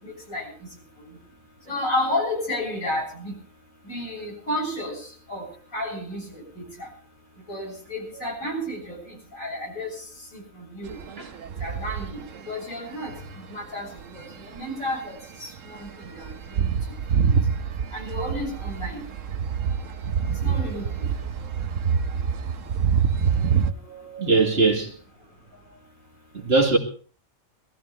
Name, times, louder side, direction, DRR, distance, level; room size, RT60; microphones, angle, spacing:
voice 1, 0.0-0.5 1.7-3.4 3.9-5.5 5.7-6.9 7.5-9.9 10.3-11.0 11.6-12.2 12.5-13.1 13.5-13.9 14.1-15.9 16.1-16.8 17.2-17.4 17.9-19.0 20.4-21.1, left 1 dB, 70° left, 8.6 m, -31 dB
sound 1, 10.9-12.5 13.1-13.3 14.0-14.6 14.9-15.0 15.2-15.3 15.5-23.7, right 6 dB, 70° right, 1.3 m, -26 dB
voice 2, 23.9-24.9 26.3-26.8, right 3 dB, 45° right, 2.5 m, -21 dB
22.5 x 15.0 x 3.4 m
omnidirectional pair, 1.4 m